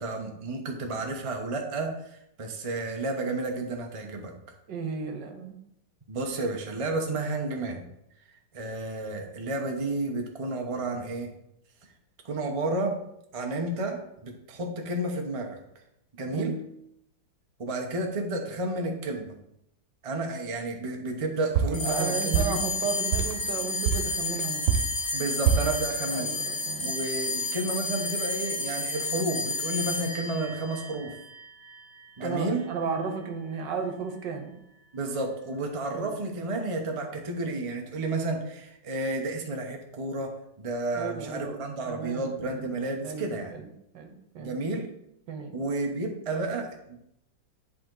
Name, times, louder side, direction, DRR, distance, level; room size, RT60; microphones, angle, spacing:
voice 1, 0.0-2.0 2.4-4.3 6.1-7.9 8.5-11.3 12.2-13.0 13.3-15.6 16.2-16.5 17.6-19.4 20.0-22.6 25.1-26.3 26.8-31.1 32.2-32.6 34.9-43.5 44.4-44.9 45.5-47.0, right 2 dB, 30° right, 2 dB, 0.7 m, -31 dB
voice 2, 4.7-5.5 16.3-16.6 21.6-24.7 26.1-27.0 32.2-34.6 35.9-36.1 40.9-41.6 41.9-42.7 43.0-43.7 43.9-44.6 45.3-45.6, right 5 dB, 70° right, 5 dB, 1.6 m, -34 dB
sound 1, 21.5-23.4 23.8-25.8, right 7 dB, 90° right, 1.5 m, -26 dB
sound 2, 21.7-32.4, left 2 dB, 50° left, 1.8 m, -32 dB
10.5 x 4.2 x 3.9 m, 0.80 s
omnidirectional pair, 2.0 m